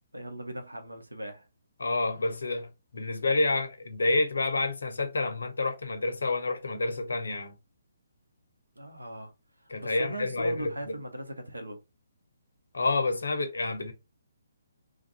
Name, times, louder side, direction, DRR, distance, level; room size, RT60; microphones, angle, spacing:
voice 1, 0.1-1.5 8.8-9.3 9.8-11.8, right 1 dB, 80° right, 0.8 m, -39 dB
voice 2, 1.8-7.6 9.7-10.7 12.7-13.9, left 2 dB, 65° left, 0.7 m, -29 dB
2.5 x 2.5 x 3.9 m
figure-of-eight pair, 135°, 0 cm